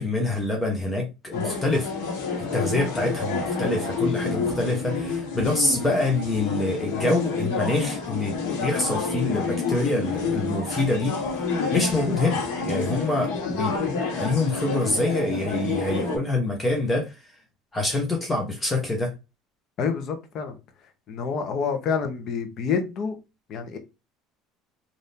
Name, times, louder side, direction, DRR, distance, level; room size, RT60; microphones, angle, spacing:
voice 1, 0.0-1.9 2.5-11.2 11.7-13.8 14.2-17.1 17.7-19.1, left 2 dB, 15° left, 0.9 m, -26 dB
sound 1, 1.3-16.2, left 4 dB, 90° left, 1.3 m, -29 dB
voice 2, 19.8-20.5 21.1-23.2 23.5-23.8, left 6 dB, 45° left, 0.8 m, -28 dB
3.5 x 2.6 x 2.7 m
cardioid pair, 130°, 0 cm